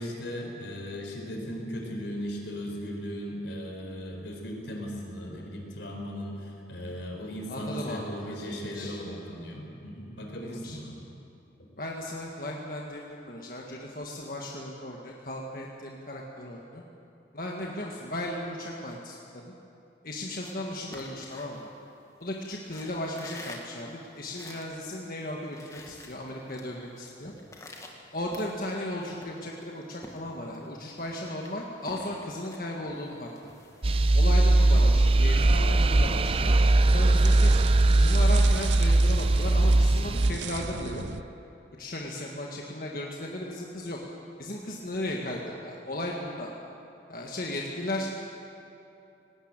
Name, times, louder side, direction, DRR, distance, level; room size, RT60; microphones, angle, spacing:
voice 1, 0.0-11.1, equal, 85° left, 1 dB, 4.6 m, -37 dB
voice 2, 7.5-9.0 10.4-10.8 11.8-16.8 17.3-19.5 20.0-21.7 22.2-27.3 28.1-33.3 34.1-36.5 36.9-37.5 37.9-41.0 41.8-44.0 44.4-46.5 47.1-48.1, left 1 dB, 50° left, -1 dB, 1.7 m, -36 dB
sound 1, 20.2-22.2 22.6-24.8 25.2-25.3 25.4-26.7 27.0-28.8 29.2-30.7 31.0-34.8, left 2 dB, 20° left, 1.8 m, -48 dB
sound 2, 33.8-40.3, right 2 dB, 30° right, 0.5 m, -20 dB
sound 3, 35.4-41.2, right 4 dB, 90° right, 0.7 m, -37 dB
18.5 x 18.5 x 9.0 m, 2.7 s
head